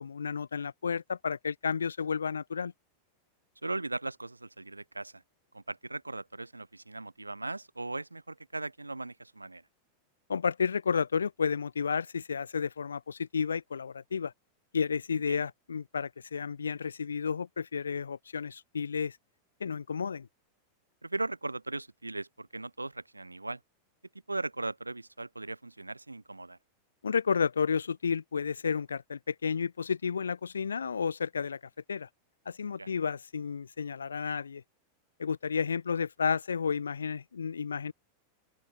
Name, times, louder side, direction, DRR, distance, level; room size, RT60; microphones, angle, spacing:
voice 1, 0.0-2.7 10.3-14.3 14.7-19.2 19.6-20.3 27.0-31.6 31.9-32.1 32.5-34.6 35.2-37.9, left 6 dB, 70° left, 2.3 m, -31 dB
voice 2, 3.6-5.2 5.5-9.6 15.3-15.5 21.0-23.6 24.3-26.6 32.8-32.9, right 2 dB, 85° right, 5.9 m, -38 dB
open air
figure-of-eight pair, 90°, 0 cm